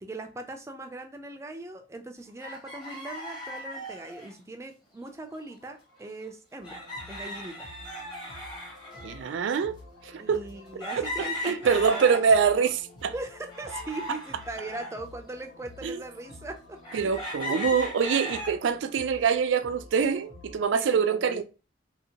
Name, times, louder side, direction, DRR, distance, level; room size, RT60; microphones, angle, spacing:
voice 1, 0.0-7.7 10.2-12.7 13.1-16.8 17.5-17.8 20.7-21.4, right 2 dB, 15° right, 0.4 m, -40 dB
sound 1, 2.4-4.3 5.5-5.6 5.9-6.0 6.6-9.4 10.0-10.1 10.8-12.5 13.0-14.9 15.6-15.7 16.8-18.6 19.1-19.5, left 1 dB, 25° left, 1.0 m, -37 dB
sound 2, 6.6-20.6, left 2 dB, 75° left, 1.5 m, -50 dB
voice 2, 9.0-9.8 10.0-10.4 11.2-13.1 15.8-16.0 16.9-21.4, right 6 dB, 80° right, 0.4 m, -25 dB
2.8 x 2.7 x 2.8 m
head